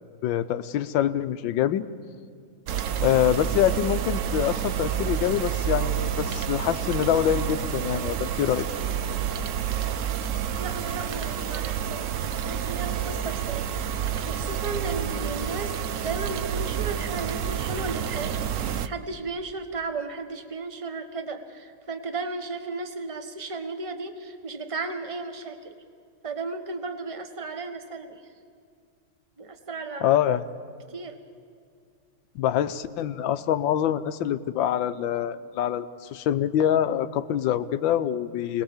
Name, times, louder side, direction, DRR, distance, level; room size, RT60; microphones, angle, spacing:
voice 1, 0.2-1.8 3.0-8.7 30.0-30.4 32.3-38.6, left 10 dB, 75° left, 12 dB, 1.5 m, -25 dB
sound 1, 2.7-18.9, right 9 dB, 75° right, 0.7 m, -29 dB
voice 2, 10.6-13.8 14.3-25.8 26.2-28.2 29.4-30.2 30.9-31.2, right 3 dB, 20° right, 6 dB, 1.2 m, -35 dB
26.5 x 20.0 x 7.2 m, 2.2 s
omnidirectional pair, 2.2 m